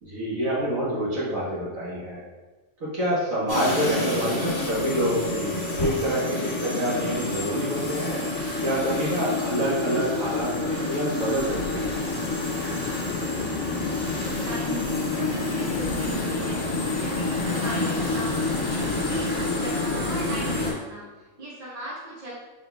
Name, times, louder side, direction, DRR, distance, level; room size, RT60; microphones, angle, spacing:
voice 1, 0.0-2.2 2.8-8.2 8.6-11.9 18.7-19.1, equal, 75° right, -8 dB, 1.7 m, -27 dB
sound 1, 3.4-20.8, left 2 dB, 10° left, 1.1 m, -43 dB
sound 2, 3.5-20.7, left 2 dB, 45° left, 1.4 m, -28 dB
sound 3, 11.4-19.2, left 4 dB, 85° left, 1.0 m, -37 dB
voice 2, 12.9-16.6 17.0-18.3 18.6-22.3, right 1 dB, 35° right, -6 dB, 0.8 m, -38 dB
6.0 x 3.8 x 2.2 m, 1.2 s
omnidirectional pair, 1.4 m